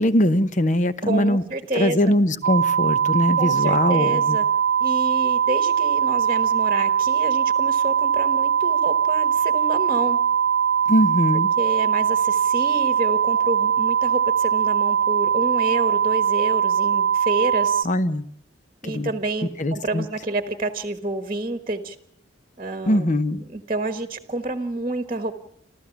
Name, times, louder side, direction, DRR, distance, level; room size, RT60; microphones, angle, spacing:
voice 1, 0.0-1.4 1.7-4.4 10.9-11.5 17.8-18.2 18.8-19.1 19.6-20.1 22.9-23.4, left 1 dB, 40° left, 0.9 m, -21 dB
voice 2, 1.0-2.1 3.4-4.4 4.8-10.2 11.6-17.9 18.8-22.0 22.6-23.1 23.4-25.4, right 2 dB, 30° right, 1.3 m, -29 dB
sound 1, 2.4-17.8, right 8 dB, 75° right, 1.0 m, -21 dB
27.0 x 15.0 x 7.2 m
head